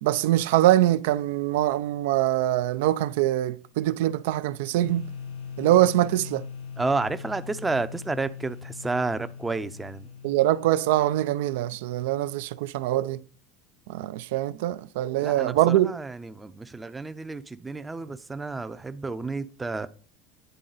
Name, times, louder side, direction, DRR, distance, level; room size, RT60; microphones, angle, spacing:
voice 1, 0.0-5.0 5.6-6.4 10.2-13.2 13.9-15.9, right 14 dB, 80° right, 0.4 m, -23 dB
sound 1, 4.8-11.6, left 6 dB, 90° left, 2.2 m, -41 dB
voice 2, 6.8-10.1 15.2-19.9, right 3 dB, 15° right, 0.5 m, -31 dB
9.1 x 3.7 x 3.9 m
supercardioid pair, 120°, 0 cm